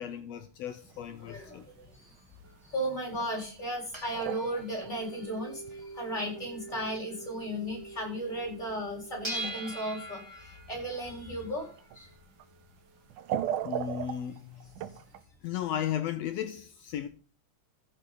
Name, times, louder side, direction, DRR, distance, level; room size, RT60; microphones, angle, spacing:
voice 1, 0.0-1.6 13.6-14.7 15.4-17.1, left 10 dB, 80° left, 1.5 m, -35 dB
sound 1, 0.8-1.3 1.6-1.7 2.6-2.7 3.1-3.4 3.7-5.9 6.2-6.9 7.2-7.3 8.2-8.3 9.4-9.8 11.8-12.0 12.4-12.5 13.1-15.2, right 10 dB, 90° right, 2.4 m, -37 dB
voice 2, 1.2-1.8 2.7-11.7 12.0-12.1, equal, 15° left, 4.0 m, -35 dB
sound 2, 2.4-8.0 8.3-8.4 8.6-13.5, right 1 dB, 15° right, 1.2 m, -44 dB
sound 3, 4.5-9.4, right 3 dB, 60° left, 2.7 m, -46 dB
14.5 x 6.7 x 4.1 m
omnidirectional pair, 3.6 m